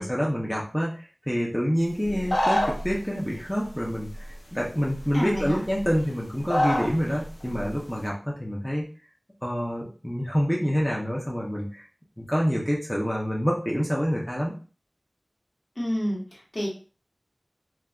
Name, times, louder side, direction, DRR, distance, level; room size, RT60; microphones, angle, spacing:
voice 1, 0.0-8.9 9.4-11.8 12.2-14.5, equal, 5° left, -3 dB, 0.7 m, -27 dB
sound 1, 2.0-3.0 4.1-4.2 4.9-5.0 5.3-6.0 6.4-6.9 7.2-7.7, equal, 80° left, 0.7 m, -25 dB
voice 2, 5.1-5.6 15.8-16.7, equal, 45° left, -4 dB, 1.3 m, -29 dB
3.1 x 2.3 x 2.4 m, 0.38 s
wide cardioid pair, 50°, 0 cm